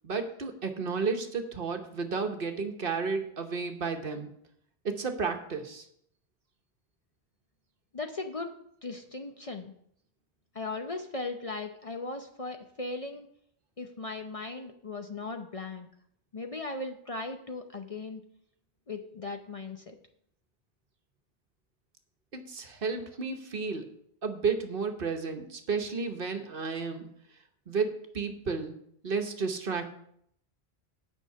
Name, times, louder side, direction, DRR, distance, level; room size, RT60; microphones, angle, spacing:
voice 1, 0.0-4.3 4.8-5.9 22.3-23.9 24.2-27.1 27.7-28.8 29.0-29.9, right 4 dB, 60° right, 6 dB, 1.2 m, -32 dB
voice 2, 7.9-8.6 8.8-9.7 10.5-13.3 13.8-15.9 16.3-18.2 18.9-20.0, left 3 dB, 40° left, 5 dB, 0.7 m, -38 dB
9.2 x 5.6 x 6.7 m, 0.70 s
omnidirectional pair, 1.1 m